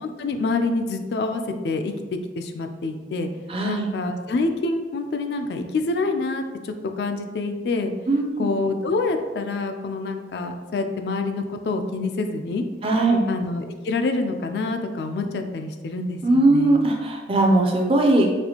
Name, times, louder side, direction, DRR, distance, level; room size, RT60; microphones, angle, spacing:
voice 1, 0.0-1.9 2.4-3.3 3.6-7.9 8.4-12.6 13.3-16.8, left 3 dB, 65° left, 6 dB, 0.3 m, -26 dB
voice 2, 3.5-3.9 8.1-8.5 12.8-13.2 16.2-18.3, right 2 dB, 30° right, 2 dB, 0.4 m, -19 dB
4.2 x 2.4 x 2.8 m, 1.3 s
head